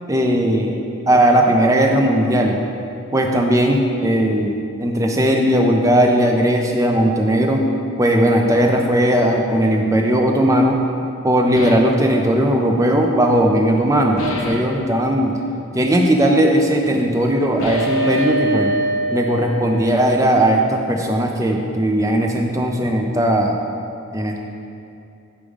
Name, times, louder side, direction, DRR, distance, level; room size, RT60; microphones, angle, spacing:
voice 1, 0.1-0.8 1.1-2.6 3.1-7.6 8.0-10.8 11.2-15.3 15.7-18.7 19.1-23.6 24.1-24.4, right 1 dB, 15° right, 2 dB, 0.4 m, -17 dB
sound 1, 11.5-12.0 14.2-14.8 17.6-20.1, right 1 dB, 60° left, 0.7 m, -24 dB
5.0 x 4.9 x 5.0 m, 2.6 s
head